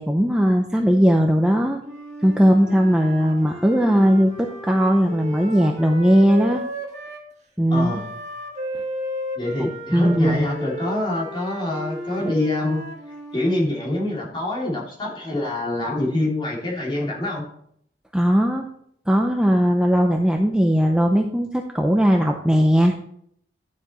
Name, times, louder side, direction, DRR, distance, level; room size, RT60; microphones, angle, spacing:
voice 1, 0.0-1.8 2.2-6.6 7.6-8.0 9.6-10.5 18.1-18.7 19.1-22.9, equal, 5° right, 2 dB, 0.5 m, -18 dB
Wind instrument woodwind instrument, 1.8-7.2 7.7-13.6, equal, 40° right, 1.7 m, -34 dB
voice 2, 7.7-8.1 9.3-12.8 13.3-17.4, left 1 dB, 30° left, -4 dB, 2.7 m, -25 dB
11.0 x 7.3 x 3.1 m, 0.68 s
head